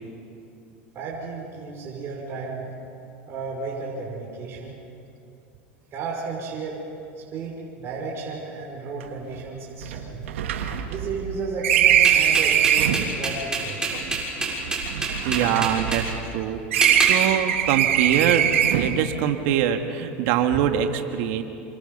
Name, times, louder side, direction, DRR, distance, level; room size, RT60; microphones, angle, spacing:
voice 1, 0.9-2.7 3.3-4.7 5.9-6.8 7.2-10.3 10.9-13.8, right 4 dB, 40° right, -3 dB, 5.6 m, -33 dB
sound 1, 9.0-9.1 9.3-9.4 9.8-13.1 14.0-16.4 16.7-19.0, right 10 dB, 90° right, 1.9 m, -22 dB
sound 2, 12.0-16.0 16.8-17.2, right 3 dB, 10° right, 7.0 m, -26 dB
voice 2, 15.0-16.6 17.0-21.4, right 9 dB, 65° right, 5 dB, 1.8 m, -24 dB
28.0 x 27.0 x 5.5 m, 2.7 s
supercardioid pair, 115°, 7 cm